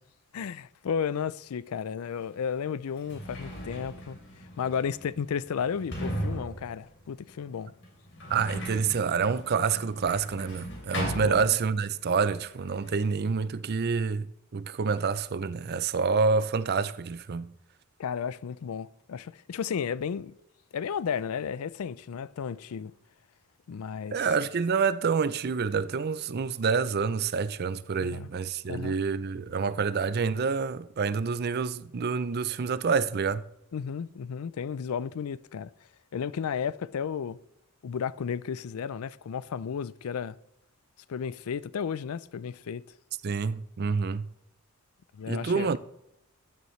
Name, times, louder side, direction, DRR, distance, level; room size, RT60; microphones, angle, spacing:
voice 1, 0.3-4.2 4.6-7.7 11.2-11.5 18.0-20.3 20.7-22.9 23.7-24.3 28.0-28.3 28.7-29.0 33.7-35.7 36.1-37.4 37.8-40.4 41.1-42.8 45.1-45.7, left 7 dB, 75° left, 0.4 m, -33 dB
Sliding door, 2.2-2.3 2.9-12.0 12.3-13.1, equal, 55° left, 3.1 m, -38 dB
voice 2, 8.3-14.3 14.5-17.5 24.1-33.4 43.2-44.3 45.3-45.8, right 5 dB, 45° right, 0.5 m, -27 dB
15.0 x 9.4 x 3.2 m
head